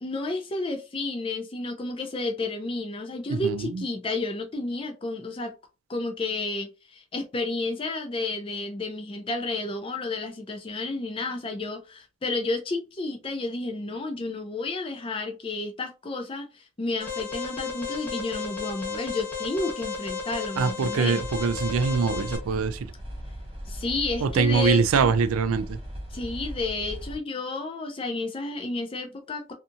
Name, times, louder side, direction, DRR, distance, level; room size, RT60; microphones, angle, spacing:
voice 1, 0.0-5.5 5.9-21.2 23.7-25.1 26.1-29.5, left 2 dB, 25° left, 0.4 m, -31 dB
voice 2, 3.3-3.8 20.6-22.9 24.2-25.8, right 5 dB, 85° right, 0.3 m, -24 dB
Alarm, 17.0-22.4, left 5 dB, 10° left, 0.8 m, -34 dB
sound 1, 21.2-27.2, equal, 25° right, 1.0 m, -38 dB
2.7 x 2.5 x 2.4 m
head